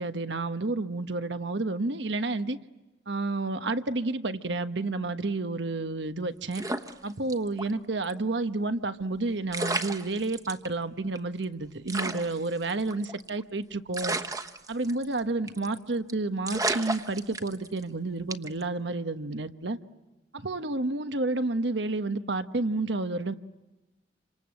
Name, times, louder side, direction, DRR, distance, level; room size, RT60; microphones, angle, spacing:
voice 1, 0.0-2.6 3.1-6.6 7.0-14.2 14.7-19.8 20.3-23.3, right 2 dB, 80° right, 9 dB, 1.2 m, -30 dB
sound 1, 6.5-7.7 8.0-8.1 9.2-9.3 9.5-10.7 11.2-11.3 11.4-11.5 11.9-13.4 13.9-15.2 15.5-15.8 16.1-16.2 16.5-17.8 18.3-18.6, right 2 dB, 20° right, 1.1 m, -32 dB
28.5 x 26.5 x 7.7 m, 1.1 s
head